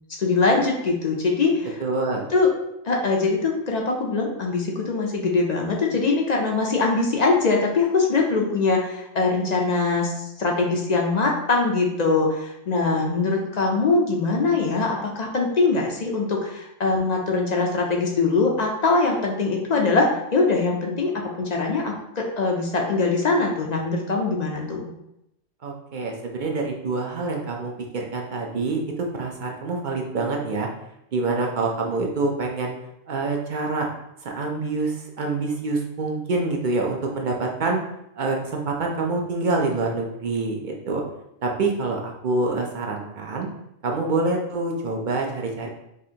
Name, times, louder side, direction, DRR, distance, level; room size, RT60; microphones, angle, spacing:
voice 1, 0.1-1.8 2.3-2.5 2.8-24.9, left 3 dB, 50° left, 0 dB, 0.5 m, -22 dB
voice 2, 1.8-2.3 25.6-30.7 31.1-32.8 33.1-33.9 34.2-37.8 38.2-41.0 41.4-43.5 43.8-45.7, right 3 dB, 55° right, 0 dB, 0.6 m, -26 dB
4.9 x 2.5 x 2.8 m, 0.83 s
omnidirectional pair, 1.2 m